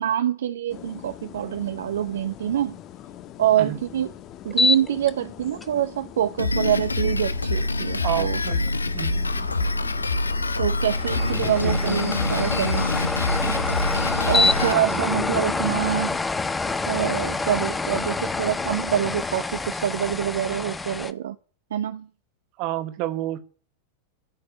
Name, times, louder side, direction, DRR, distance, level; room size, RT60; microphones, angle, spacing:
voice 1, 0.0-2.7 3.4-4.1 4.4-8.4 10.6-12.9 13.4-13.7 14.3-16.2 16.8-21.4 21.7-22.1, right 10 dB, 60° right, 0.9 m, -25 dB
sound 1, 0.7-19.4, left 11 dB, 35° left, 1.3 m, -39 dB
sound 2, 4.5-5.1 5.6-5.7 10.8-21.1, left 3 dB, 10° left, 1.0 m, -26 dB
Drum kit, 6.4-14.7, left 2 dB, 80° left, 0.8 m, -25 dB
voice 2, 8.0-8.6 8.9-9.1 11.6-12.0 14.4-15.0 22.6-23.4, right 15 dB, 45° right, 2.1 m, -30 dB
14.5 x 6.6 x 9.9 m
figure-of-eight pair, 90°, 0 cm